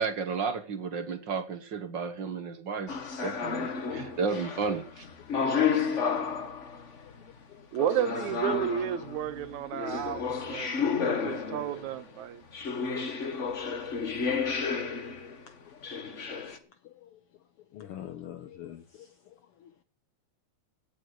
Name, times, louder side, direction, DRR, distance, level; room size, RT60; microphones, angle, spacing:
voice 1, 0.0-3.0 3.2-5.1, right 5 dB, 50° right, 1.7 m, -32 dB
sound 1, 2.9-7.0 7.8-12.0 12.5-15.4 15.8-16.6, left 6 dB, 40° left, 1.0 m, -31 dB
voice 2, 7.7-12.4, right 11 dB, 75° right, 2.2 m, -32 dB
voice 3, 17.7-19.1, left 11 dB, 75° left, 1.4 m, -44 dB
17.0 x 7.9 x 6.5 m
omnidirectional pair, 3.4 m